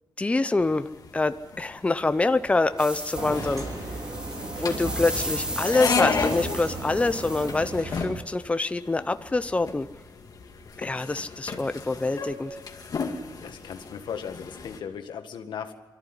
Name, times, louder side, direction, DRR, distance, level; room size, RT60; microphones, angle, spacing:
voice 1, 0.2-0.9 1.1-3.6 4.5-9.9 10.8-12.6, left 3 dB, 15° left, 11 dB, 0.7 m, -25 dB
sound 1, 0.6-14.8, left 5 dB, 50° left, 2.4 m, -34 dB
sound 2, 2.8-7.7, right 1 dB, 10° right, 1.5 m, -36 dB
sound 3, 3.1-8.1, right 2 dB, 45° right, 3.4 m, -35 dB
voice 2, 13.4-15.7, left 7 dB, 85° left, 6 dB, 1.9 m, -37 dB
24.0 x 14.0 x 9.8 m, 1.2 s
wide cardioid pair, 125°, 8 cm